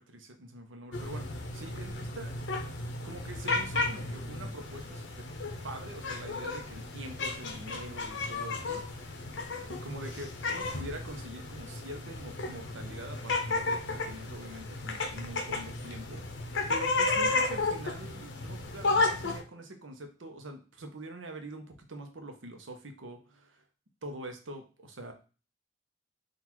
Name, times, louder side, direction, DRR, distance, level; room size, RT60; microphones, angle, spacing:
voice 1, 0.0-2.4 3.0-5.3 5.6-9.4 9.7-16.2 16.7-23.6 24.0-25.1, right 1 dB, 90° right, 6 dB, 0.8 m, -44 dB
sound 1, 0.9-19.4, left 3 dB, 75° left, 0.7 m, -33 dB
3.9 x 2.5 x 4.4 m, 0.35 s
head